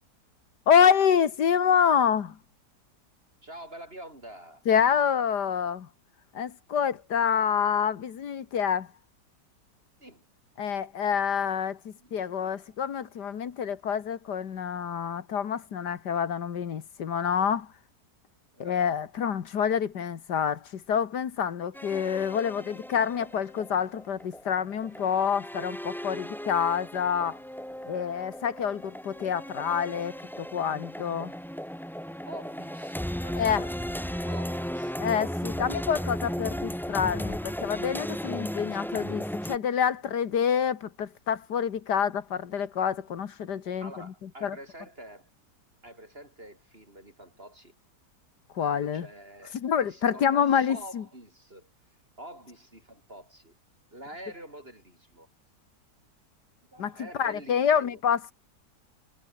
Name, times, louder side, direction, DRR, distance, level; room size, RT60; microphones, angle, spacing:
voice 1, 0.7-2.4 4.7-5.9 6.3-8.9 10.6-17.7 18.6-27.4 27.8-31.3 33.4-33.7 35.0-44.6 48.6-49.1 49.5-51.0 56.8-58.3, left 7 dB, 70° left, 2.0 m, -27 dB
voice 2, 3.4-4.6 10.0-10.3 11.9-12.7 18.5-18.8 32.3-35.1 43.8-45.3 45.8-47.7 48.7-51.7 52.2-53.5 53.9-55.3 56.7-58.0, right 1 dB, 30° right, 7.3 m, -46 dB
sound 1, 21.7-39.6, equal, ahead, 1.0 m, -36 dB
omnidirectional pair, 1.8 m